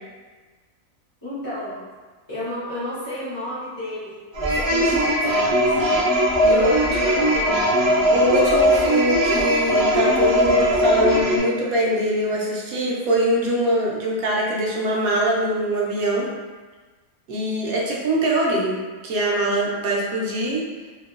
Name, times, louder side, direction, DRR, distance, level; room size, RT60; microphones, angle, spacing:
voice 1, 1.2-1.8 2.3-4.2 4.4-5.3 5.6-5.7 6.4-7.7, left 1 dB, 15° left, -15 dB, 0.9 m, -32 dB
sound 1, 4.3-11.4, equal, 60° right, 0.4 m, -19 dB
voice 2, 6.4-6.8 8.1-16.3 17.3-20.7, right 1 dB, 90° right, -3 dB, 1.1 m, -23 dB
2.9 x 2.6 x 2.4 m, 1.4 s
omnidirectional pair, 1.4 m